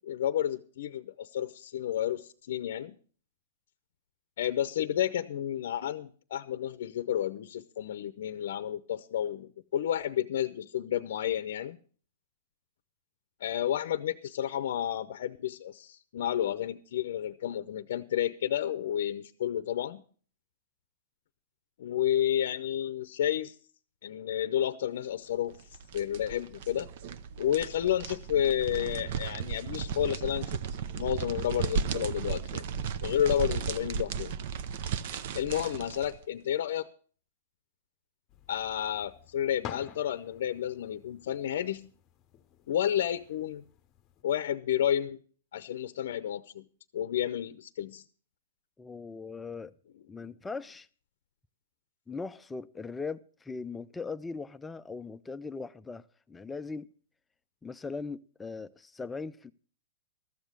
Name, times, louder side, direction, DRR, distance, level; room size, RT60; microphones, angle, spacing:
voice 1, 0.0-2.9 4.4-11.8 13.4-20.0 21.8-23.5 24.0-25.6 25.9-26.9 27.4-30.6 31.0-34.3 35.3-36.9 38.5-41.9 42.7-43.6 44.2-45.2 45.5-46.6 46.9-48.0, left 10 dB, 65° left, 0.6 m, -31 dB
sound 1, 25.5-36.2, right 7 dB, 50° right, 0.7 m, -35 dB
sound 2, 38.3-44.2, left 10 dB, 25° left, 0.8 m, -50 dB
voice 2, 48.8-49.7 50.1-50.9 52.1-56.9 57.6-59.5, left 4 dB, 10° left, 0.4 m, -39 dB
13.5 x 7.4 x 6.6 m
hypercardioid pair, 145°, 0 cm